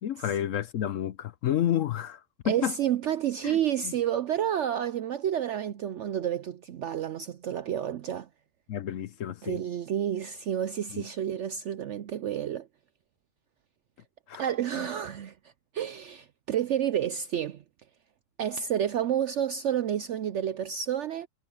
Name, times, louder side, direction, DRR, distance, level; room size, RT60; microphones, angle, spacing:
voice 1, 0.0-2.7 3.4-3.6 3.8-3.9 8.7-9.6 10.9-11.0 14.3-14.4 14.7-14.9, left 10 dB, 60° left, 0.9 m, -30 dB
voice 2, 2.4-8.3 9.4-12.7 14.4-15.3 15.7-17.6 18.4-21.3, right 10 dB, 70° right, 0.7 m, -30 dB
omnidirectional pair, 1.7 m